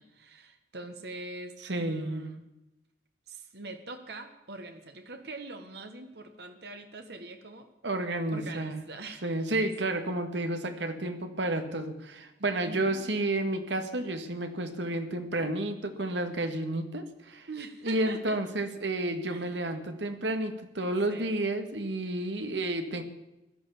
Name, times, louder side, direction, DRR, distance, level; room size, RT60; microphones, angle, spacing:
voice 1, 0.0-2.5 3.3-7.7 8.3-9.3 12.6-13.1 17.5-18.4 19.3-19.6 21.1-21.3, right 2 dB, 65° right, 6 dB, 1.7 m, -43 dB
voice 2, 1.6-2.2 7.8-8.8 9.2-17.5 17.8-23.0, right 1 dB, 80° right, 8 dB, 2.0 m, -31 dB
16.0 x 12.0 x 7.2 m, 0.93 s
head